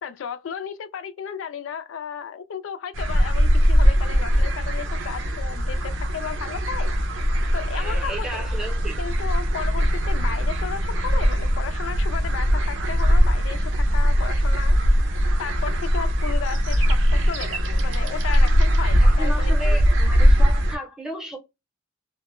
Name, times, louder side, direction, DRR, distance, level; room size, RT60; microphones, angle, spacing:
voice 1, 0.0-6.9 7.5-8.5 9.0-14.8 15.4-19.8, left 7 dB, 90° left, 0.4 m, -34 dB
sound 1, 2.9-20.8, equal, 80° right, 0.5 m, -20 dB
voice 2, 7.7-9.0 19.0-21.4, right 1 dB, 5° right, 0.6 m, -34 dB
2.1 x 2.1 x 2.9 m
head